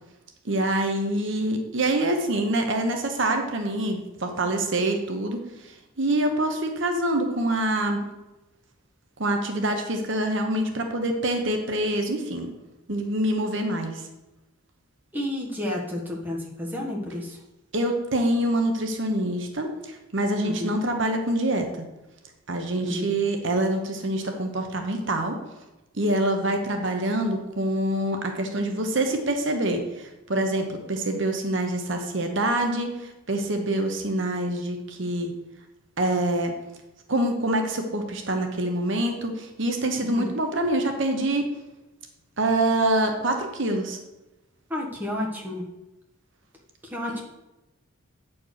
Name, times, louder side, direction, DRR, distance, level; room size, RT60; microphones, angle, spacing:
voice 1, 0.4-8.1 9.2-12.5 12.9-14.0 17.7-21.9 22.5-25.4 26.0-35.3 36.0-36.5 37.1-41.5 42.4-44.0, right 1 dB, 60° right, 4 dB, 1.0 m, -26 dB
voice 2, 15.1-17.4 20.4-20.8 22.8-23.1 40.0-40.3 44.7-45.6 46.8-47.2, left 1 dB, 10° right, -3 dB, 1.4 m, -31 dB
8.9 x 4.5 x 6.5 m, 1.0 s
head